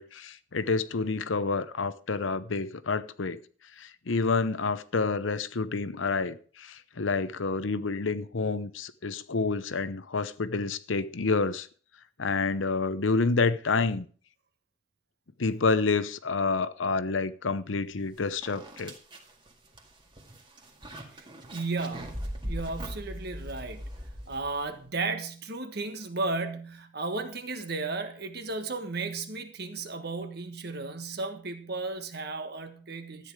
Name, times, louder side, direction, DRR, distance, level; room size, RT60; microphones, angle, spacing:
voice 1, 0.0-3.4 3.8-11.7 12.2-14.1 15.4-18.9, left 4 dB, 80° left, 0.8 m, -28 dB
sound 1, 17.9-18.0 18.4-24.8, equal, 25° right, 1.9 m, -40 dB
voice 2, 21.5-23.8 24.3-33.3, right 3 dB, 55° right, 1.6 m, -34 dB
13.5 x 9.4 x 4.9 m
head